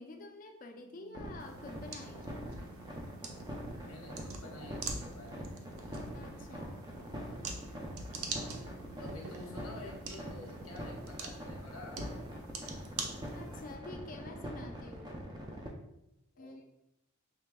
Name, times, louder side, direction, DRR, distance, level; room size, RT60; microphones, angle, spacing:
voice 1, 0.0-2.3 6.1-6.8 13.3-15.2 16.4-16.7, left 2 dB, 40° left, 4 dB, 0.4 m, -48 dB
Organ, 0.7-11.3, right 7 dB, 40° right, 1.1 m, -58 dB
sound 1, 1.1-15.7, equal, 20° right, 0.4 m, -43 dB
sound 2, 1.4-13.7, right 4 dB, 75° right, 0.5 m, -46 dB
voice 2, 3.8-5.5 9.0-12.1 16.3-16.7, left 1 dB, 90° left, -1 dB, 1.1 m, -49 dB
4.7 x 3.3 x 2.2 m, 0.86 s
head